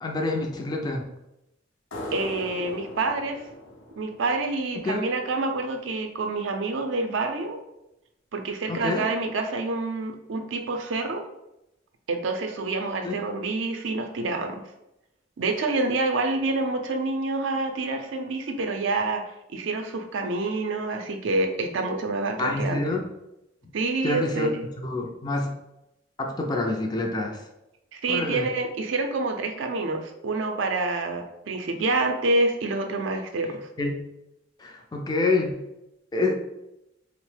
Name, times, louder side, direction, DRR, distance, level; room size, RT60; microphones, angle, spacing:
voice 1, 0.0-1.0 4.8-5.0 8.7-9.0 13.0-13.1 22.4-23.1 24.0-25.5 26.2-27.4 28.1-28.5 33.8-34.0 34.6-35.5 36.1-36.3, left 2 dB, 20° left, 1 dB, 0.3 m, -27 dB
sound 1, 1.9-5.2, left 1 dB, 85° left, 0.5 m, -40 dB
voice 2, 2.1-3.4 4.0-7.6 8.3-11.2 12.1-14.6 15.4-19.2 19.5-22.8 23.7-24.6 27.9-33.6, right 3 dB, 70° right, 5 dB, 0.4 m, -27 dB
2.9 x 2.0 x 3.2 m, 0.88 s
head